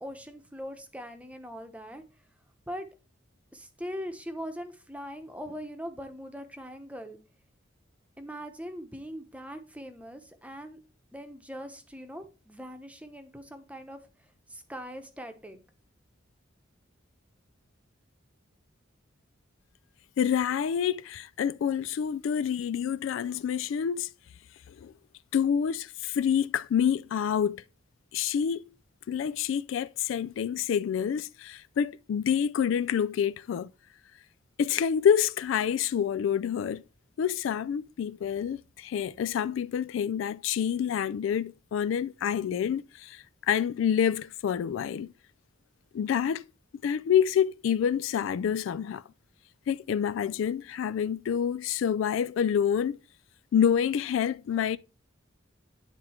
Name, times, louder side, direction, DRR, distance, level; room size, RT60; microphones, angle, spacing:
voice 1, 0.0-2.0 2.7-2.9 3.5-7.2 8.2-10.8 11.1-14.0 14.5-15.6, equal, 5° right, 0.9 m, -41 dB
voice 2, 20.2-24.1 24.8-24.9 25.3-27.6 28.1-28.6 29.1-33.7 34.6-36.8 37.2-45.1 45.9-46.4 46.8-49.0 49.7-53.0 53.5-54.8, left 8 dB, 70° left, 0.3 m, -27 dB
9.8 x 3.7 x 4.3 m
head